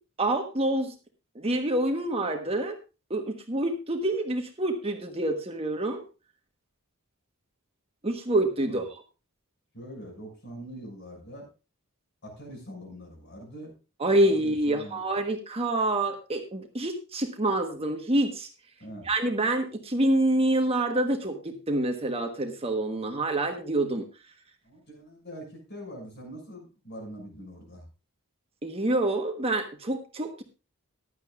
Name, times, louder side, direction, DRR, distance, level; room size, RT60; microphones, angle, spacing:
voice 1, 0.2-0.9 1.3-2.7 3.1-6.0 8.0-8.8 14.0-18.5 19.0-24.0 28.6-30.4, right 1 dB, 25° right, 4 dB, 1.3 m, -27 dB
voice 2, 9.7-11.5 12.2-13.7 14.2-15.1 18.8-19.1 24.6-27.9, equal, 50° left, 1 dB, 6.6 m, -43 dB
15.5 x 11.5 x 2.5 m, 0.30 s
head